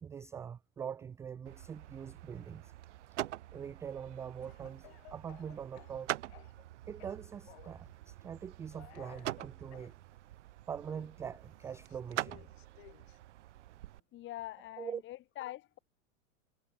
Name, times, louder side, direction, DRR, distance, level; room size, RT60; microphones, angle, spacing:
voice 1, 0.0-2.7 3.5-6.2 6.9-9.9 10.7-12.4 14.8-15.0, right 7 dB, 5° right, 0.4 m, -43 dB
sound 1, 1.5-14.0, right 14 dB, 60° right, 1.1 m, -45 dB
Speech / Cough, 4.4-6.7 7.0-7.8 8.7-9.9 10.9-13.2, left 20 dB, 50° left, 1.3 m, -58 dB
voice 2, 14.1-15.8, left 15 dB, 30° left, 1.5 m, -44 dB
figure-of-eight pair, 100°, 40 cm